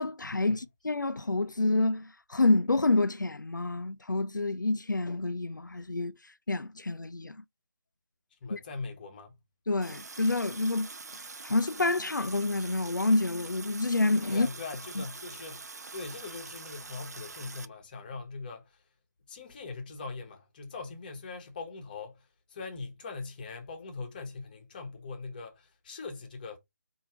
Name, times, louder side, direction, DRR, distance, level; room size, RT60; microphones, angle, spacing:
voice 1, 0.0-7.4 8.5-8.6 9.7-14.5 15.0-15.1, left 2 dB, 90° left, 0.4 m, -28 dB
voice 2, 8.4-9.3 14.3-18.8 19.3-26.6, left 4 dB, 30° left, 1.0 m, -41 dB
Water tap faucet, 9.8-17.7, right 4 dB, 60° right, 0.5 m, -45 dB
4.4 x 2.8 x 4.3 m
figure-of-eight pair, 150°, 10 cm